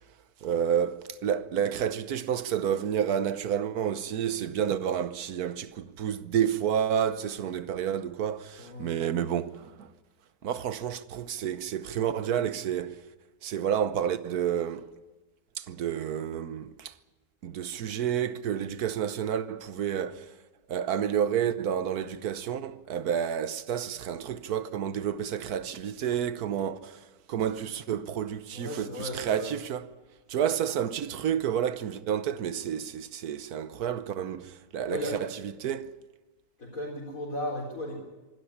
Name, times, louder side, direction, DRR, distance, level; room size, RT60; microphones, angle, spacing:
voice 1, 0.4-9.9 10.4-13.0 13.4-14.9 15.6-16.9 17.4-20.3 20.7-29.9 30.3-35.3 35.6-35.9, right 9 dB, 65° right, 1.3 m, -30 dB
voice 2, 8.6-8.9 28.5-29.5 34.9-35.2 36.6-38.0, left 1 dB, 50° left, 4.9 m, -35 dB
25.0 x 13.5 x 9.9 m
omnidirectional pair, 1.8 m